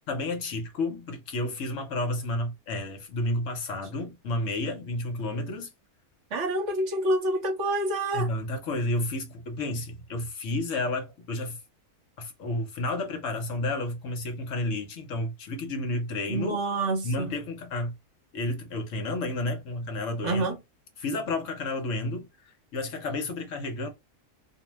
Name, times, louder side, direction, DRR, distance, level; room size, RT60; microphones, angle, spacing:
voice 1, 0.1-5.7 8.1-11.6 12.2-16.6 17.0-17.9 18.3-20.5 21.0-23.9, left 2 dB, 65° left, 1.0 m, -31 dB
voice 2, 6.3-8.3 16.3-17.3 20.2-20.6, right 1 dB, 55° right, 1.1 m, -27 dB
2.6 x 2.1 x 2.9 m
omnidirectional pair, 1.6 m